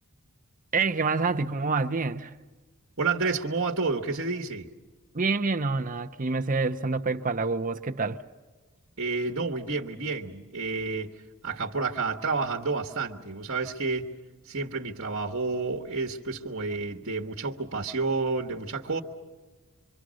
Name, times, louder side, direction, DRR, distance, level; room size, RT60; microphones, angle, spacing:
voice 1, 0.7-2.3 5.1-8.2, right 4 dB, 35° right, 0.7 m, -27 dB
voice 2, 3.0-4.7 9.0-11.1 11.4-14.1 14.5-19.0, right 4 dB, 60° right, 1.3 m, -30 dB
26.0 x 24.5 x 6.3 m
head